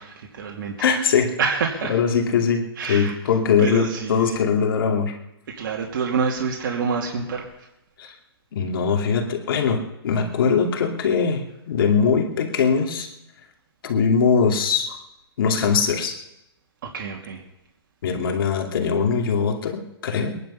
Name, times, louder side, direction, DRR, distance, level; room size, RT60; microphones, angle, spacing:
voice 1, 0.0-0.9 1.4-2.0 2.8-3.1 3.6-4.4 5.5-7.7 16.8-17.4, right 5 dB, 55° right, -1 dB, 2.6 m, -27 dB
voice 2, 0.8-1.4 1.9-5.2 8.0-8.1 8.5-13.1 13.8-15.0 15.4-16.2 18.0-20.4, left 6 dB, 60° left, 2 dB, 2.6 m, -21 dB
23.0 x 11.0 x 5.7 m, 0.88 s
hypercardioid pair, 150°, 13 cm